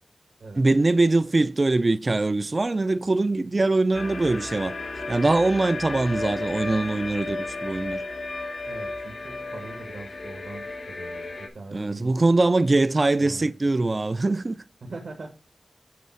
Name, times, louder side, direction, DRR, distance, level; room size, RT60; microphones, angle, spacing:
voice 1, 0.6-4.7 5.1-8.0 11.7-14.6, right 2 dB, 40° right, 0.3 m, -22 dB
sound 1, 3.9-11.5, left 2 dB, 90° left, 1.1 m, -34 dB
voice 2, 8.6-12.2 13.2-13.5 13.8-14.2 14.8-15.3, right 3 dB, 85° right, 1.5 m, -41 dB
8.5 x 4.1 x 4.3 m
wide cardioid pair, 75°, 0 cm